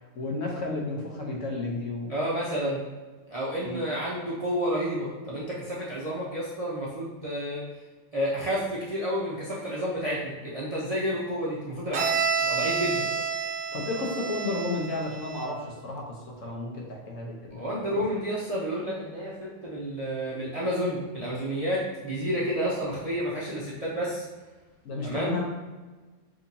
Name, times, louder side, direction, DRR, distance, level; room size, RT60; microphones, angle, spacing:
voice 1, 0.2-2.1 3.6-3.8 13.0-13.2 13.7-18.0 24.8-25.4, left 2 dB, 60° left, -1 dB, 1.1 m, -32 dB
voice 2, 2.1-2.8 3.3-7.6 8.1-13.0 16.8-16.9 17.5-24.3 25.0-25.3, equal, 40° right, -6 dB, 0.5 m, -30 dB
Bowed string instrument, 11.9-15.7, right 6 dB, 80° right, 1.1 m, -29 dB
6.1 x 2.9 x 2.7 m, 1.3 s
omnidirectional pair, 1.6 m